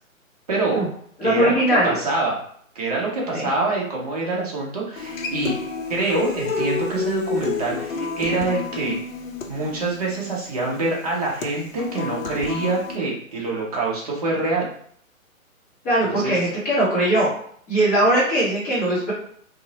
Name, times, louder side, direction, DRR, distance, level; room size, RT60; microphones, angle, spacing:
voice 1, 0.5-0.8 1.2-2.4 2.7-5.5 5.9-9.0 9.5-14.7 16.0-16.5, right 2 dB, 30° right, -3 dB, 0.6 m, -25 dB
voice 2, 1.2-1.9 3.3-3.5 15.8-17.3 17.7-19.1, right 1 dB, 10° left, -10 dB, 0.5 m, -20 dB
Human voice / Acoustic guitar, 5.0-13.0, left 5 dB, 70° left, 0.5 m, -30 dB
2.6 x 2.0 x 2.7 m, 0.63 s
figure-of-eight pair, 135°, 42 cm